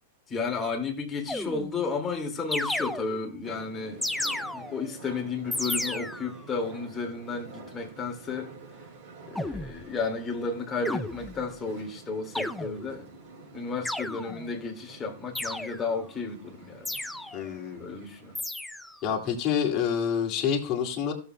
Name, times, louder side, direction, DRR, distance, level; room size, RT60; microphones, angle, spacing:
voice 1, 0.3-4.0 4.5-8.5 9.3-13.1 13.5-16.9 17.8-18.3, left 4 dB, 25° left, 2.1 m, -33 dB
sound 1, 1.3-1.9 2.5-3.4 4.0-4.9 5.5-6.4 9.4-9.8 10.9-11.6 12.4-13.0 13.9-14.6 15.4-16.0 16.9-17.5 18.4-19.0, left 1 dB, 5° left, 0.4 m, -33 dB
sound 2, 3.4-18.4, right 3 dB, 55° right, 4.5 m, -48 dB
voice 2, 17.3-17.8 19.0-21.1, left 8 dB, 40° left, 2.2 m, -27 dB
16.0 x 7.4 x 2.2 m
hypercardioid pair, 105°, 0 cm